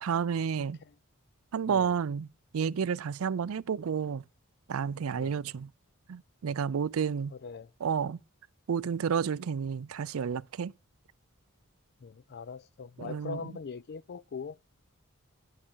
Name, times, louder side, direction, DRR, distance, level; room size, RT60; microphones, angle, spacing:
voice 1, 0.0-0.8 1.5-2.3 2.5-4.2 4.7-5.7 6.1-7.3 7.8-8.2 8.7-10.7 13.0-13.6, right 7 dB, 70° right, 0.4 m, -31 dB
voice 2, 12.0-14.6, left 5 dB, 50° left, 0.4 m, -41 dB
12.0 x 5.8 x 4.5 m
head